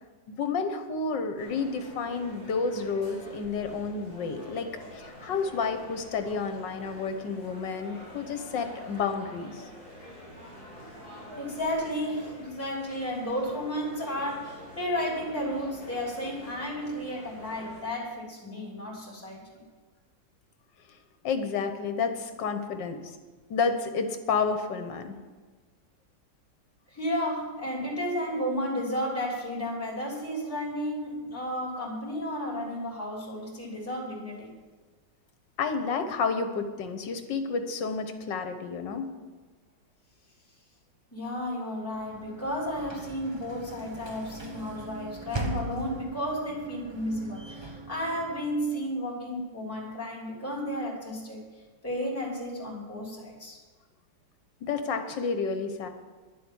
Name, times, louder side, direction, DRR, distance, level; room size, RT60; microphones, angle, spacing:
voice 1, 0.3-9.6 21.2-23.2 23.5-25.2 35.6-39.1 54.6-55.9, left 5 dB, 70° left, 7 dB, 1.8 m, -30 dB
sound 1, 1.4-17.8, equal, 50° right, 5.2 m, -47 dB
voice 2, 11.4-19.6 26.9-34.5 41.1-51.4 51.8-53.6, equal, 5° left, -4 dB, 3.3 m, -33 dB
Sliding door / Slam, 41.9-48.9, right 2 dB, 35° right, 0.4 m, -40 dB
11.0 x 7.7 x 9.3 m, 1.4 s
omnidirectional pair, 2.1 m